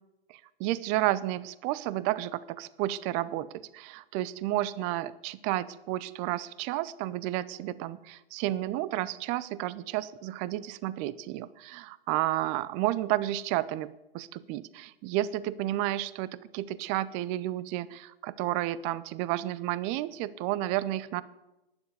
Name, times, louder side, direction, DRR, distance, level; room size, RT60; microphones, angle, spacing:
voice 1, 0.3-13.9 14.1-21.2, right 15 dB, 25° right, 18 dB, 0.5 m, -31 dB
11.5 x 9.8 x 8.2 m, 0.96 s
figure-of-eight pair, 120°, 30 cm